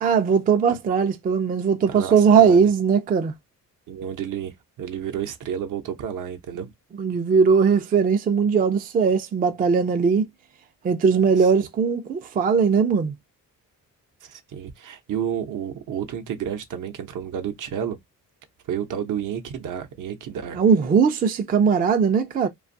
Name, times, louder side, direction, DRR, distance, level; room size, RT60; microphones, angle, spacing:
voice 1, 0.0-3.3 7.0-10.2 10.8-13.1 20.5-22.5, right 6 dB, 25° right, 0.3 m, -19 dB
voice 2, 1.9-2.7 3.9-6.7 11.4-11.5 14.2-18.0 18.7-20.6, right 9 dB, 65° right, 0.7 m, -31 dB
2.5 x 2.3 x 2.5 m
cardioid pair, 100°, 34 cm